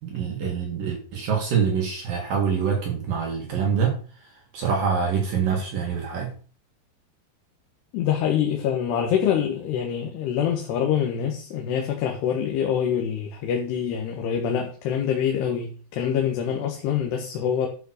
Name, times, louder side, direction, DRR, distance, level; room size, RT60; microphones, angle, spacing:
voice 1, 0.0-4.0 4.5-6.3, right 6 dB, 60° right, 3.5 m, -25 dB
voice 2, 7.9-17.7, left 8 dB, 75° left, 3.4 m, -25 dB
12.5 x 5.7 x 6.5 m
omnidirectional pair, 5.0 m